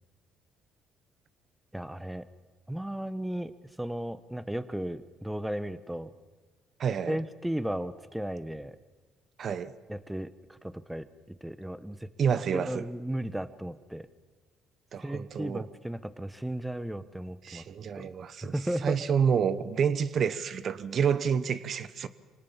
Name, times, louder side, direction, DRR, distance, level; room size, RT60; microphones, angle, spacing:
voice 1, 1.7-2.3 2.7-3.5 3.8-6.1 7.1-8.8 9.9-12.1 12.5-14.1 15.0-17.6 17.9-18.1 18.4-19.1, right 1 dB, 5° right, 1.0 m, -35 dB
voice 2, 6.8-7.2 9.4-9.7 12.2-12.8 14.9-15.7 17.4-18.5 18.8-22.1, right 7 dB, 50° right, 0.9 m, -28 dB
25.0 x 18.5 x 7.3 m
cardioid pair, 90°, 0 cm